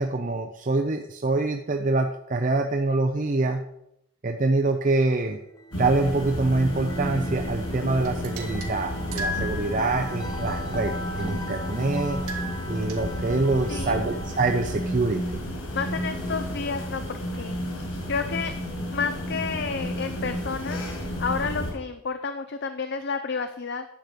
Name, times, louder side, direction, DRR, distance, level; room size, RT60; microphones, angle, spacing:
voice 1, 0.0-3.6 4.2-5.4 5.8-12.2 12.7-15.4, right 3 dB, 35° right, 4 dB, 0.5 m, -25 dB
sound 1, 5.5-15.0, equal, 20° left, 0.9 m, -40 dB
sound 2, 5.7-21.7, equal, 70° left, 4.9 m, -32 dB
sound 3, 6.0-6.6 8.0-10.4 12.1-13.0, left 1 dB, 90° right, 2.0 m, -36 dB
voice 2, 13.7-14.0 15.7-17.6 18.1-18.5 18.9-20.8 21.2-23.9, left 5 dB, 50° left, 8 dB, 0.6 m, -30 dB
10.5 x 7.7 x 5.0 m, 0.80 s
head